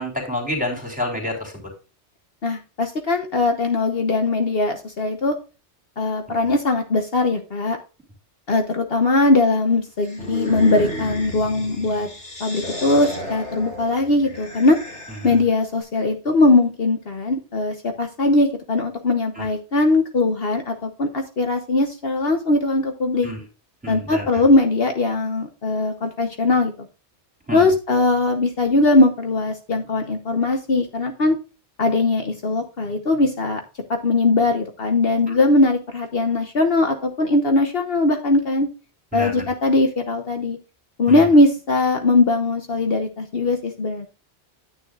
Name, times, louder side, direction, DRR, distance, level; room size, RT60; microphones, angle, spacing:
voice 1, 0.0-1.5 15.2-15.3 19.4-19.5 23.2-23.4 23.8-24.4 27.5-27.7 35.3-35.4 39.1-39.4 41.1-41.2, left 1 dB, 5° right, 2 dB, 3.4 m, -28 dB
voice 2, 2.4-5.3 6.0-7.8 8.5-12.1 12.4-14.8 15.2-23.3 23.9-26.7 27.5-31.4 31.8-33.6 33.9-38.7 39.1-40.6 41.0-44.1, left 2 dB, 55° left, 5 dB, 1.3 m, -20 dB
sound 1, 10.0-15.5, equal, 80° left, 4.0 m, -33 dB
10.0 x 9.2 x 2.4 m, 0.32 s
omnidirectional pair, 1.2 m